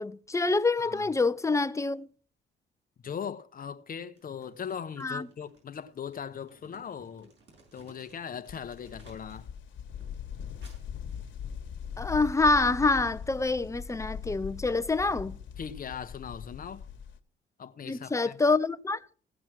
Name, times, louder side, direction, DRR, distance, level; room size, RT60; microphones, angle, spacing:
voice 1, 0.0-2.1 5.0-5.3 12.0-15.4 17.8-19.1, left 3 dB, 15° left, 0.6 m, -26 dB
voice 2, 3.0-7.3 7.7-9.5 15.6-16.9 17.6-18.4, left 7 dB, 45° left, 0.9 m, -39 dB
Crumpling crinkling, 4.1-9.5 9.9-11.8, right 3 dB, 65° right, 7.1 m, -60 dB
sound 1, 8.5-17.2, left 8 dB, 70° left, 1.4 m, -41 dB
16.5 x 6.1 x 6.1 m
cardioid pair, 90°, 20 cm